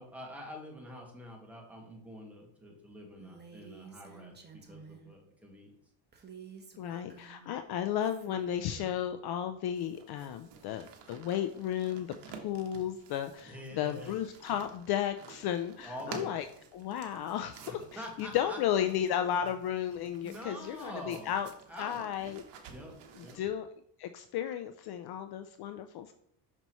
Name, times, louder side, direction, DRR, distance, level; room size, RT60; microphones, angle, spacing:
voice 1, 0.0-4.3 4.7-5.7 13.4-14.2 15.8-16.4 17.7-18.6 20.2-21.3 21.7-22.0 22.7-23.4, equal, 5° right, -1 dB, 1.6 m, -46 dB
Female speech woman speaking, 3.2-5.1 6.1-7.5 8.0-9.0, right 6 dB, 20° right, 1.0 m, -51 dB
voice 2, 6.8-16.5 16.7-21.5 21.8-22.4 23.2-23.7 24.0-26.1, left 10 dB, 55° left, 9 dB, 0.5 m, -34 dB
sound 1, 9.7-23.3, right 5 dB, 55° right, 1.3 m, -52 dB
6.0 x 5.4 x 3.0 m, 0.69 s
cardioid pair, 115°, 48 cm